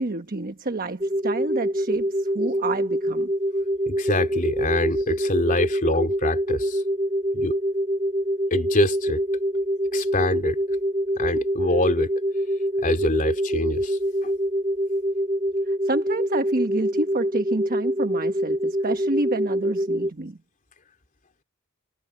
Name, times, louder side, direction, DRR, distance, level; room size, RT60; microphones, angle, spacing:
voice 1, 0.0-3.3 15.8-20.4, right 2 dB, 40° right, 1.2 m, -28 dB
sound 1, 1.0-20.1, equal, 25° right, 1.7 m, -25 dB
voice 2, 3.9-6.8 7.3-7.6 8.5-9.2 9.9-10.6 11.2-12.1 12.8-14.3, left 2 dB, 40° left, 3.2 m, -25 dB
head